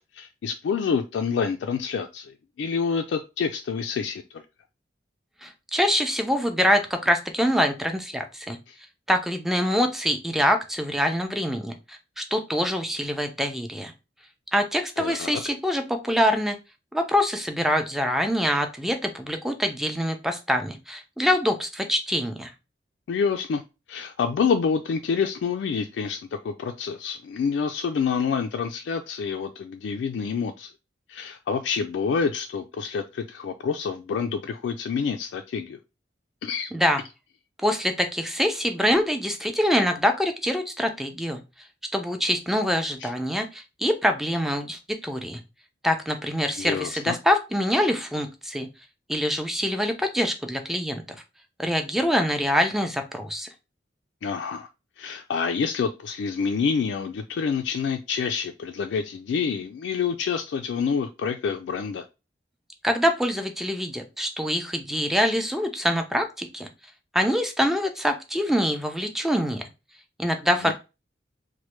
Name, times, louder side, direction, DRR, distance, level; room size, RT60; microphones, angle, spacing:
voice 1, 0.0-4.4 8.7-8.8 15.0-15.4 23.1-23.6 23.9-26.2 26.4-30.7 31.1-35.8 36.4-36.7 43.0-43.1 46.6-47.2 54.2-54.7 55.0-62.1 70.6-70.7, left 6 dB, 85° left, 6 dB, 0.3 m, -27 dB
voice 2, 5.4-8.6 9.1-13.9 14.5-16.6 16.9-22.5 36.7-37.0 37.6-41.4 41.9-45.4 45.8-48.7 49.1-51.0 51.6-53.5 62.8-66.7 67.1-69.6 70.2-70.7, equal, ahead, 5 dB, 0.4 m, -25 dB
3.1 x 2.1 x 3.0 m, 0.27 s
head